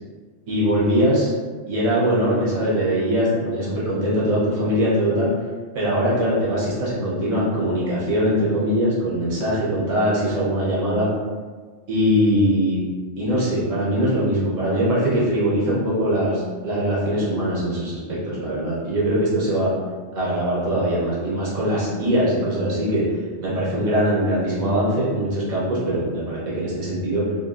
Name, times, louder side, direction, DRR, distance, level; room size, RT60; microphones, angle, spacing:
voice 1, 0.5-1.3 1.7-5.3 5.7-11.1 11.9-12.8 13.2-19.7 20.1-23.0 23.4-27.3, equal, 80° right, -7 dB, 1.2 m, -22 dB
3.3 x 2.2 x 2.3 m, 1.5 s
omnidirectional pair, 1.3 m